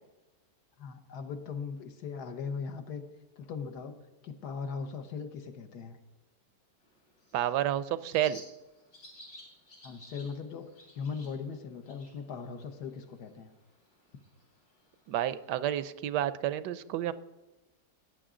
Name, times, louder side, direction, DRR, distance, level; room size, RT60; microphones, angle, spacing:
voice 1, 0.8-3.1 3.4-6.0 9.8-10.7 10.9-13.5, left 5 dB, 65° left, 8 dB, 1.5 m, -39 dB
Bird, 6.8-15.8, left 1 dB, 85° left, 4.0 m, -56 dB
voice 2, 7.3-8.4 15.1-17.1, right 12 dB, 75° right, 14 dB, 1.1 m, -30 dB
17.0 x 9.4 x 3.8 m, 1.1 s
omnidirectional pair, 1.9 m